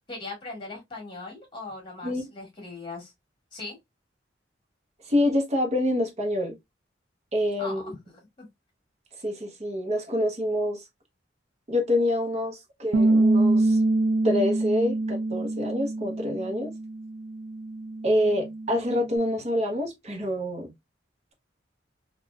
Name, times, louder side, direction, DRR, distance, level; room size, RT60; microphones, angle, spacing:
voice 1, 0.1-3.1 3.5-3.8 7.6-8.5, left 2 dB, 30° left, 1.7 m, -39 dB
voice 2, 5.1-6.6 7.3-7.9 9.2-10.8 11.7-13.8 14.2-16.7 18.0-20.7, left 1 dB, 40° right, 0.9 m, -26 dB
Bass guitar, 12.9-19.2, right 2 dB, 75° right, 0.4 m, -25 dB
3.6 x 2.4 x 2.2 m
head